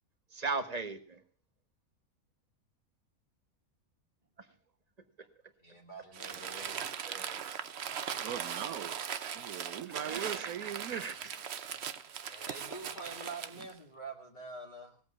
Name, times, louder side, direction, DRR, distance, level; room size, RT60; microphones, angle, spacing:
voice 1, 0.3-1.2 7.1-7.5 9.9-10.5 10.9-11.1, right 4 dB, 30° right, 7 dB, 1.4 m, -38 dB
voice 2, 5.6-6.9 12.2-15.0, right 3 dB, 35° left, -1 dB, 2.0 m, -46 dB
Crumpling crinkling, 6.1-13.7, right 8 dB, 55° right, 1.0 m, -39 dB
voice 3, 8.2-8.9 9.3-11.0, right 10 dB, 85° right, 14 dB, 1.3 m, -39 dB
18.0 x 8.1 x 6.8 m, 0.42 s
omnidirectional pair, 1.5 m